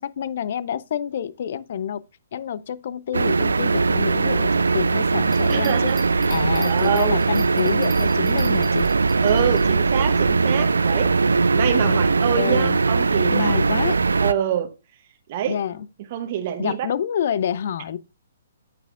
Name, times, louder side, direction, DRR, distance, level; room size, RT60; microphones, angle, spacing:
voice 1, 0.0-2.0 2.3-5.9 6.3-8.9 11.8-12.0 12.4-12.8 13.3-14.0 15.5-15.9 16.6-18.0, left 9 dB, 55° left, 0.5 m, -28 dB
sound 1, 3.1-14.3, right 4 dB, 75° right, 0.3 m, -20 dB
sound 2, 5.3-9.7, right 4 dB, 15° right, 2.0 m, -43 dB
voice 2, 5.5-7.2 9.2-11.2 11.5-13.6 14.2-14.7 15.3-15.6 16.1-16.9, right 10 dB, 40° right, 0.9 m, -26 dB
8.9 x 8.4 x 2.4 m
figure-of-eight pair, 125°, 0 cm